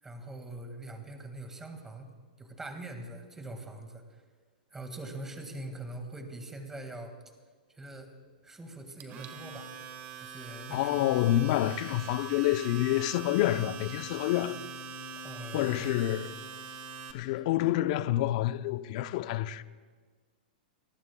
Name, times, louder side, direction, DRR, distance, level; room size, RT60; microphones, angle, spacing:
voice 1, 0.0-2.1 2.4-4.2 4.7-7.1 7.7-8.1 8.4-9.7 10.2-11.1 15.2-15.9 17.4-17.5, right 2 dB, 10° right, 1.9 m, -43 dB
Domestic sounds home sounds, 9.0-17.1, right 4 dB, 30° right, 1.4 m, -43 dB
voice 2, 10.7-14.6 15.5-16.4 17.1-19.6, left 14 dB, 50° left, 0.6 m, -28 dB
27.0 x 18.5 x 2.3 m
hypercardioid pair, 145°, 5 cm